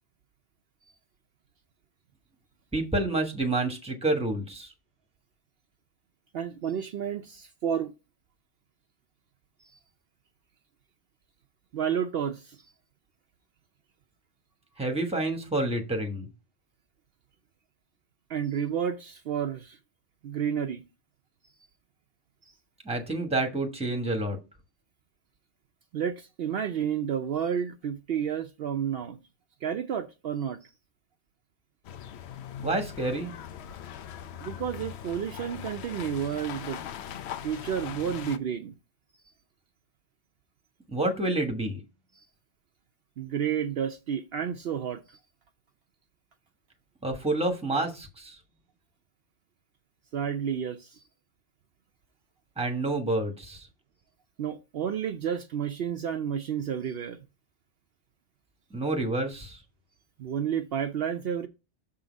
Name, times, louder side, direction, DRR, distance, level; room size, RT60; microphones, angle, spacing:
voice 1, 2.7-4.7 14.8-16.3 22.8-24.4 32.6-33.3 40.9-41.8 47.0-48.3 52.6-53.7 58.7-59.6, right 2 dB, 5° right, 1.1 m, -28 dB
voice 2, 6.3-7.9 11.7-12.6 18.3-19.8 20.2-20.8 25.9-29.2 29.6-30.7 34.4-36.8 37.4-38.7 42.2-42.3 43.2-45.2 50.1-51.0 54.4-57.2 60.2-61.5, right 8 dB, 65° right, 0.8 m, -31 dB
sound 1, 31.8-38.4, left 9 dB, 75° left, 0.8 m, -40 dB
6.5 x 3.8 x 5.0 m
omnidirectional pair, 1.2 m